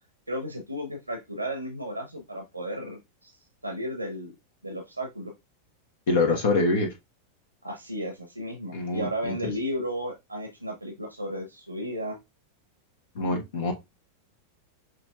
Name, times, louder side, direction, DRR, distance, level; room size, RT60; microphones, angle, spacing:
voice 1, 0.3-3.4 3.6-4.3 4.6-5.3 7.6-12.2, equal, 85° right, 3 dB, 0.9 m, -34 dB
voice 2, 6.1-6.9 8.7-9.5 13.1-13.7, left 3 dB, 55° left, 2 dB, 1.1 m, -25 dB
6.5 x 3.1 x 2.4 m, 0.21 s
figure-of-eight pair, 90°, 0 cm